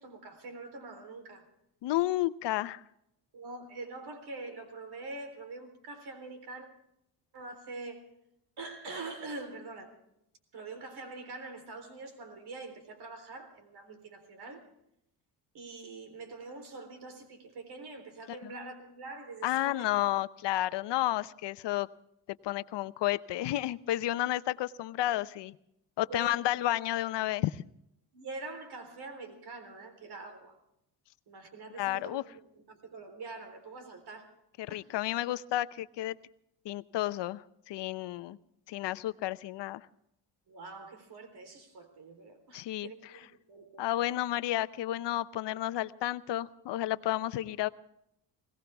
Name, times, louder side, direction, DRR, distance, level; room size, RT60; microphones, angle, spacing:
voice 1, 0.0-1.4 3.3-6.7 7.3-8.0 8.6-9.9 10.5-14.6 15.5-19.9 26.1-26.6 28.1-30.6 31.3-32.4 32.7-34.3 34.7-34.8 40.5-43.9, right 3 dB, 60° right, 7 dB, 3.8 m, -44 dB
voice 2, 1.8-2.8 18.3-18.5 19.4-21.9 22.4-25.6 26.0-27.6 31.8-32.2 34.6-36.2 36.6-38.4 38.7-39.9 42.5-42.9 43.8-47.7, left 14 dB, 70° left, 14 dB, 0.8 m, -31 dB
21.5 x 18.0 x 3.5 m, 0.77 s
cardioid pair, 110°, 45 cm